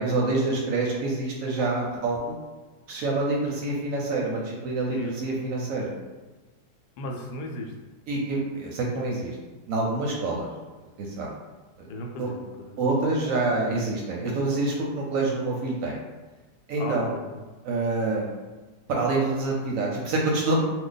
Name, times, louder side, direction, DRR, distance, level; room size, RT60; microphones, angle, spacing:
voice 1, 0.0-2.4 2.9-5.9 8.1-9.4 9.7-10.5 11.0-11.3 11.8-11.9 12.2-12.3 12.8-16.0 16.7-17.1 17.6-18.3 18.9-20.6, right 2 dB, 65° right, -2 dB, 0.8 m, -26 dB
voice 2, 7.0-7.7 11.9-12.8 16.8-17.4, left 2 dB, 85° left, 2 dB, 1.1 m, -35 dB
2.6 x 2.2 x 3.8 m, 1.2 s
omnidirectional pair, 1.7 m